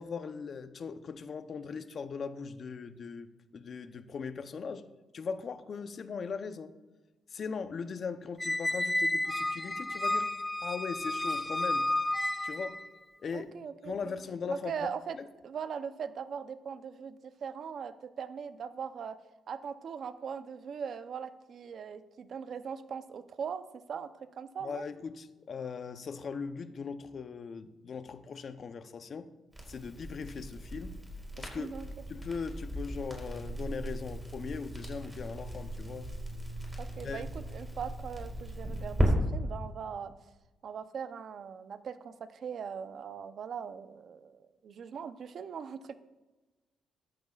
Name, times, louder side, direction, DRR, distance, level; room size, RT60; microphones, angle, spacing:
voice 1, 0.0-4.9 5.1-6.7 7.3-10.3 10.6-11.9 12.4-12.8 13.2-13.5 13.8-14.9 15.2-15.3 24.6-29.3 29.7-31.0 31.4-31.8 32.1-36.1 37.0-37.2, left 5 dB, 50° left, 11 dB, 0.7 m, -39 dB
Squeak, 8.4-12.9, left 1 dB, 10° left, 0.4 m, -31 dB
voice 2, 13.3-14.1 14.5-15.2 15.4-19.2 19.5-24.8 31.6-31.9 36.8-40.1 40.6-45.9, right 7 dB, 60° right, 11 dB, 0.7 m, -40 dB
Crackle, 29.5-39.1, right 1 dB, 10° right, 4.0 m, -37 dB
13.5 x 12.5 x 2.4 m, 1.2 s
cardioid pair, 90°, 0 cm